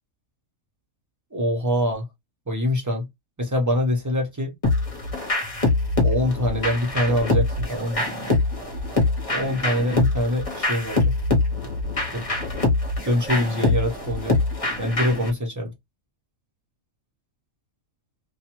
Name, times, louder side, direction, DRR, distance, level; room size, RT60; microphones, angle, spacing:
voice 1, 1.3-2.1 2.5-3.1 3.4-4.5 6.0-8.0 9.3-11.1 12.1-12.2 13.0-14.4 14.8-15.7, equal, 20° right, 0.6 m, -24 dB
sound 1, 4.6-15.3, left 2 dB, 30° left, 0.7 m, -24 dB
2.6 x 2.3 x 2.9 m
omnidirectional pair, 1.5 m